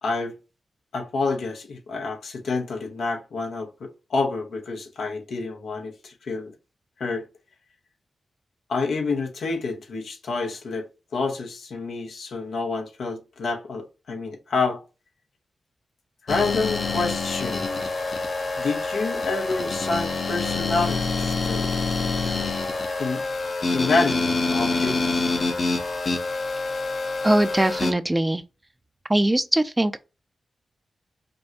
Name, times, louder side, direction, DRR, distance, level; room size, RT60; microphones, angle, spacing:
voice 1, 0.0-0.3 0.9-6.5 7.0-7.2 8.7-10.9 11.1-14.8 16.2-17.8 18.6-21.7 23.0-23.2 23.7-25.3 26.0-26.1, left 3 dB, 80° left, 0.9 m, -28 dB
sound 1, 16.3-27.9, left 3 dB, 60° left, 0.9 m, -26 dB
voice 2, 27.2-28.4 29.1-30.0, right 1 dB, 20° right, 0.5 m, -21 dB
5.2 x 2.2 x 2.9 m
cardioid pair, 50°, 0 cm